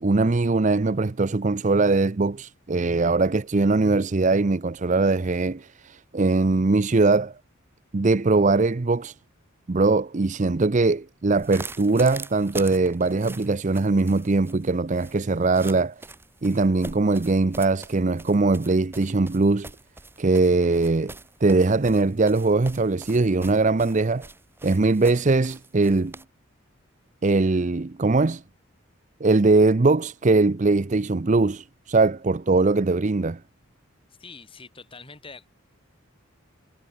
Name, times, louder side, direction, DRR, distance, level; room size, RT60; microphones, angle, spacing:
voice 1, 0.0-7.3 7.9-9.1 9.7-15.9 16.4-19.7 20.2-21.1 21.4-24.3 24.6-26.1 27.2-28.4 29.2-33.4, right 3 dB, 35° right, 0.5 m, -21 dB
sound 1, 11.3-26.2, right 2 dB, 10° right, 1.8 m, -43 dB
voice 2, 34.2-35.5, left 4 dB, 25° left, 3.7 m, -44 dB
head